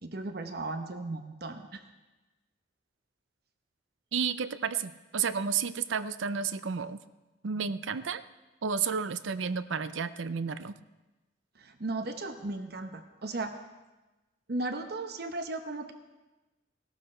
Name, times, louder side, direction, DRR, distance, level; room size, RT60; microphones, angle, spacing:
voice 1, 0.0-1.8 11.6-13.6 14.5-15.9, right 2 dB, 55° right, 7 dB, 0.9 m, -36 dB
voice 2, 4.1-7.0 7.4-8.2 8.6-10.7, right 6 dB, 90° right, 13 dB, 0.5 m, -31 dB
16.5 x 12.0 x 4.4 m, 1.1 s
head